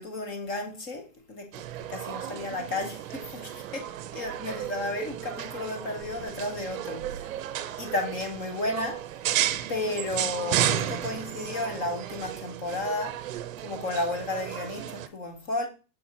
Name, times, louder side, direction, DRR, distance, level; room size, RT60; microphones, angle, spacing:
voice 1, 0.0-7.3 7.8-9.0 9.7-13.2 13.6-15.7, left 2 dB, 15° left, 0.7 m, -33 dB
sound 1, 1.5-15.1, right 11 dB, 55° right, 0.7 m, -33 dB
6.4 x 4.3 x 4.2 m
supercardioid pair, 165°, 50 cm